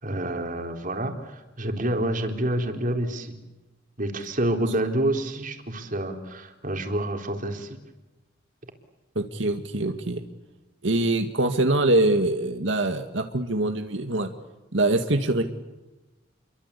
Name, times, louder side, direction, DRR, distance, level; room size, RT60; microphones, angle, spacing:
voice 1, 0.0-3.4 4.0-7.8, right 1 dB, 45° right, 5 dB, 3.8 m, -28 dB
voice 2, 9.2-10.2 10.8-14.3 14.7-15.4, right 2 dB, 80° right, 6 dB, 2.0 m, -24 dB
30.0 x 23.5 x 8.4 m, 1.1 s
head